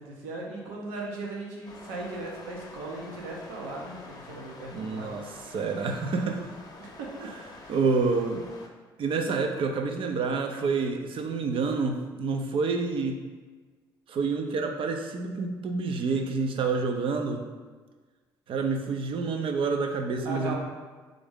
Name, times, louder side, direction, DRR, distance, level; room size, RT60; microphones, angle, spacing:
voice 1, 0.0-5.2 6.8-7.3 7.6-7.7 20.2-20.6, right 2 dB, 80° right, -1 dB, 0.9 m, -38 dB
sound 1, 1.6-8.7, left 3 dB, 35° left, 0.8 m, -47 dB
voice 2, 4.7-6.4 7.7-8.4 9.0-13.2 14.1-17.4 18.5-20.6, right 4 dB, 50° right, 5 dB, 0.6 m, -28 dB
3.8 x 3.4 x 3.6 m, 1.4 s
hypercardioid pair, 55°, 11 cm